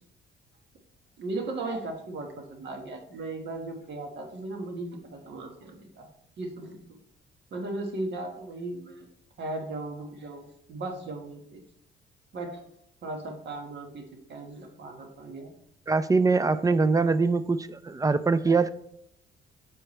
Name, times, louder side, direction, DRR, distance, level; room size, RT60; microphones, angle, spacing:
voice 1, 1.2-6.1 6.4-6.8 7.5-9.1 9.4-11.6 12.3-12.6 13.0-14.0 14.3-15.5, right 2 dB, 60° right, 3 dB, 1.4 m, -37 dB
voice 2, 15.9-18.7, right 4 dB, 15° right, 13 dB, 0.3 m, -23 dB
7.7 x 4.6 x 3.1 m, 0.76 s
cardioid pair, 90°, 20 cm